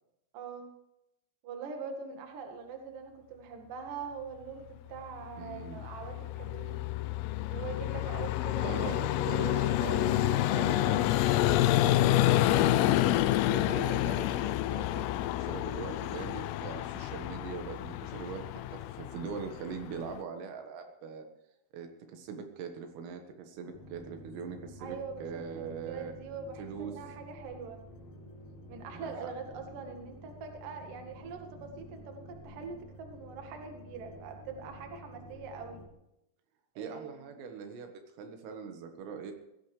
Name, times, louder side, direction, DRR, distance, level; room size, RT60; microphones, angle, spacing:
voice 1, 0.3-0.7 1.4-6.8 7.4-10.6 13.7-14.0 24.8-27.8 28.7-35.8 36.7-37.1, right 5 dB, 55° right, 3 dB, 2.9 m, -43 dB
voice 2, 5.4-5.9 8.6-13.0 13.5-21.3 21.7-26.1 26.6-26.9 29.0-29.3 36.8-37.9 38.2-39.3, right 6 dB, 85° right, 5 dB, 4.3 m, -42 dB
Vehicle, 5.5-20.2, left 14 dB, 85° left, 3.2 m, -28 dB
sound 1, 23.7-35.9, equal, 50° left, 4.2 m, -50 dB
21.0 x 16.0 x 3.4 m, 0.86 s
omnidirectional pair, 5.9 m